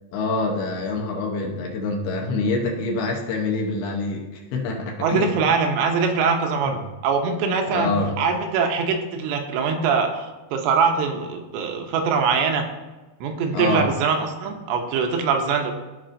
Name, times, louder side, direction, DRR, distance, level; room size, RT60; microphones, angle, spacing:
voice 1, 0.1-5.5 6.6-6.8 7.7-8.2 13.5-13.9, left 3 dB, 75° left, 0 dB, 2.8 m, -26 dB
voice 2, 5.0-7.9 8.2-12.7 13.2-15.7, right 5 dB, 85° right, 4 dB, 3.0 m, -23 dB
14.0 x 4.8 x 2.6 m, 1.2 s
omnidirectional pair, 5.0 m